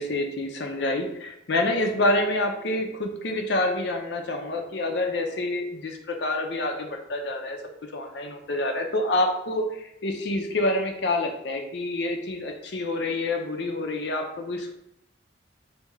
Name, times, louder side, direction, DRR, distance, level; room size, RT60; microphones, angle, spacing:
voice 1, 0.0-7.6 7.9-14.7, left 2 dB, 65° left, 4 dB, 0.5 m, -27 dB
3.4 x 2.7 x 3.1 m, 0.78 s
head